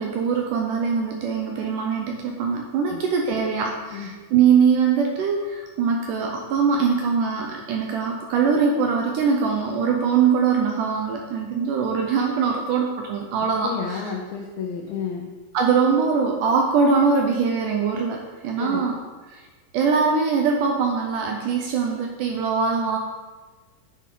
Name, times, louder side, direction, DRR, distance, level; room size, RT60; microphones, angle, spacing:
voice 1, 0.0-14.0 15.5-19.0 19.3-19.4 19.7-23.0, right 5 dB, 80° right, 2 dB, 1.9 m, -22 dB
voice 2, 13.6-15.3 18.6-18.8, left 6 dB, 90° left, -1 dB, 2.5 m, -31 dB
9.4 x 4.2 x 3.7 m, 1.4 s
omnidirectional pair, 4.1 m